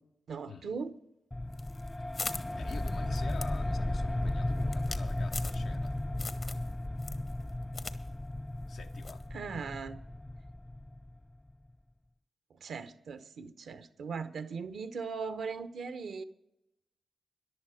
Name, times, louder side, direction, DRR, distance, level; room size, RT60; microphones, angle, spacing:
voice 1, 0.3-1.0 9.3-10.0 12.6-16.2, right 5 dB, 75° right, 0.8 m, -39 dB
sound 1, 1.3-11.5, left 1 dB, 20° left, 0.4 m, -35 dB
sound 2, 1.5-5.9 6.2-6.7 7.0-8.0 8.2-8.3 9.0-9.3, left 3 dB, 55° left, 1.1 m, -41 dB
voice 2, 2.6-6.0 8.7-9.3, left 5 dB, 75° left, 0.8 m, -48 dB
14.5 x 11.0 x 4.9 m
supercardioid pair, 40°, 0 cm